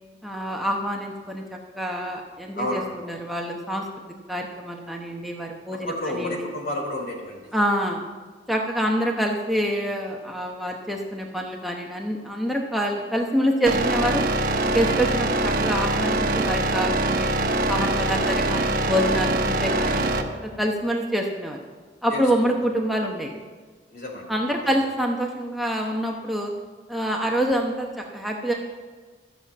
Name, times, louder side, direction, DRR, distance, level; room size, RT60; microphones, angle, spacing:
voice 1, 0.2-6.5 7.5-8.0 8.5-14.3 14.7-17.3 17.7-21.6 22.0-23.3 24.3-26.5 26.9-28.5, equal, ahead, 0 dB, 0.9 m, -26 dB
voice 2, 2.5-2.8 5.9-7.5 22.1-22.2 23.9-24.3 24.6-24.7, left 1 dB, 55° left, 1 dB, 3.2 m, -30 dB
sound 1, 13.7-20.2, right 2 dB, 55° right, 1.1 m, -23 dB
13.5 x 7.0 x 8.3 m, 1.4 s
head